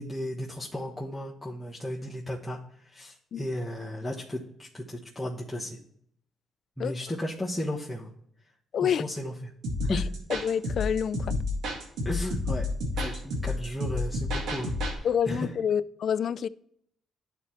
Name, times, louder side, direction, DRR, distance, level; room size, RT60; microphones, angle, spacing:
voice 1, 0.0-5.8 6.8-8.1 8.8-9.5 9.8-10.0 12.0-12.7 13.0-15.5, left 1 dB, 5° left, 1.3 m, -35 dB
voice 2, 8.7-9.1 9.9-10.0 10.3-11.4 15.0-16.5, left 8 dB, 60° left, 0.3 m, -27 dB
sound 1, 9.6-15.0, left 2 dB, 85° right, 1.8 m, -30 dB
11.0 x 4.2 x 3.1 m
cardioid pair, 90°, 0 cm